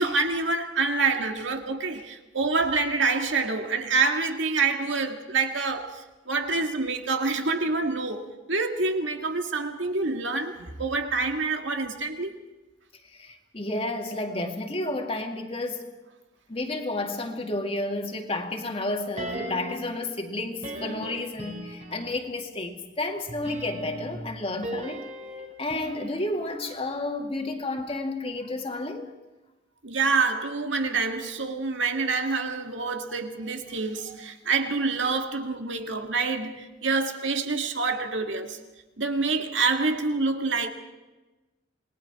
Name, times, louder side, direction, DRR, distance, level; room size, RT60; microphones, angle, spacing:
voice 1, 0.0-12.3 29.8-38.6 39.0-40.7, right 4 dB, 65° right, 2.0 m, -27 dB
voice 2, 13.1-15.8 16.5-25.0 25.6-29.1, left 2 dB, 30° left, 2.1 m, -31 dB
sound 1, 19.2-20.0 20.6-22.3 23.3-27.5 27.8-27.9, equal, 35° right, 3.2 m, -38 dB
28.0 x 20.0 x 4.8 m
head